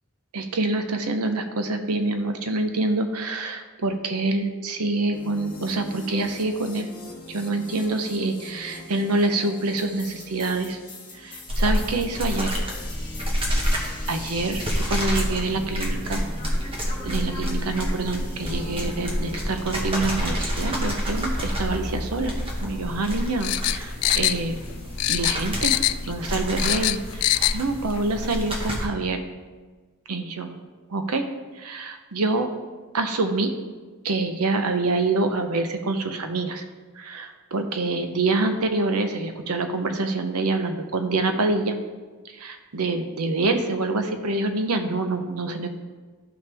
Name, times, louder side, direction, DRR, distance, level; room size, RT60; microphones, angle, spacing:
voice 1, 0.3-6.9 7.3-10.8 11.2-12.5 14.1-16.2 17.0-22.3 22.6-24.7 25.1-25.7 26.1-29.2 30.1-30.5 30.9-31.2 31.6-32.5 32.9-33.5 34.0-36.6 37.0-41.8 42.3-45.7, right 2 dB, 85° right, 7 dB, 0.8 m, -26 dB
sound 1, 5.1-23.1, left 1 dB, 25° left, 2.4 m, -39 dB
sound 2, 11.5-28.9, equal, 25° right, 1.3 m, -28 dB
sound 3, 23.4-24.7 25.0-26.1 26.4-27.6 27.9-28.0, left 16 dB, 80° left, 0.3 m, -23 dB
12.0 x 5.8 x 3.4 m, 1.4 s
head